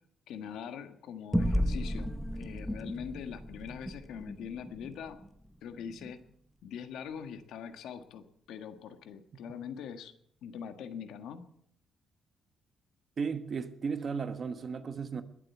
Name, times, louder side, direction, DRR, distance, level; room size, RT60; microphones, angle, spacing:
voice 1, 0.3-5.2 5.6-6.2 6.6-10.1 10.4-11.4, left 7 dB, 85° left, 1.5 m, -43 dB
sound 1, 1.3-6.1, equal, ahead, 1.1 m, -34 dB
voice 2, 13.2-15.2, right 5 dB, 35° right, 1.2 m, -35 dB
21.0 x 7.8 x 8.3 m
cardioid pair, 155°, 0 cm